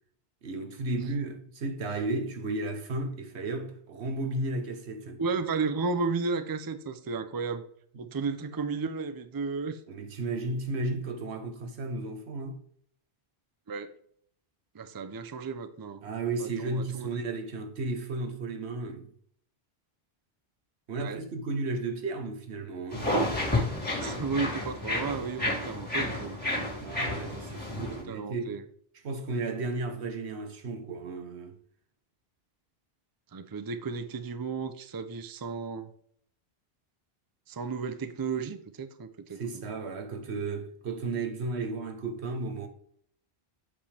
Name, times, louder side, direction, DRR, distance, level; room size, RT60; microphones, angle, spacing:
voice 1, 0.4-5.2 9.9-12.6 16.0-19.1 20.9-23.2 26.8-28.6 29.0-31.6 39.3-42.7, right 3 dB, 85° right, 1.3 m, -34 dB
voice 2, 5.2-7.6 8.0-9.8 13.7-13.9 14.7-16.0 16.4-17.1 21.0-21.2 23.7-26.4 27.7-28.6 33.3-35.9 37.5-39.6, right 4 dB, 30° right, 0.5 m, -33 dB
sound 1, 22.9-28.0, left 1 dB, 10° left, 2.3 m, -31 dB
8.2 x 5.3 x 3.4 m
omnidirectional pair, 1.1 m